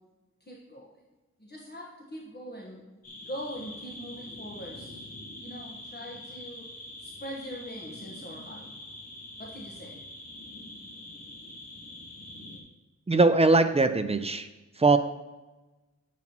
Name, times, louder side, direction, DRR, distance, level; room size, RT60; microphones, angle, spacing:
voice 1, 0.4-1.0 1.4-2.8 3.2-5.0 5.4-6.7 7.0-8.7 9.4-10.0, equal, 35° left, -3 dB, 1.3 m, -42 dB
sound 1, 3.0-12.6, left 1 dB, 55° left, 1.6 m, -44 dB
voice 2, 13.1-14.5 14.8-15.0, right 3 dB, 20° right, 9 dB, 0.5 m, -21 dB
10.0 x 7.2 x 3.0 m, 1.1 s
wide cardioid pair, 100°, 30 cm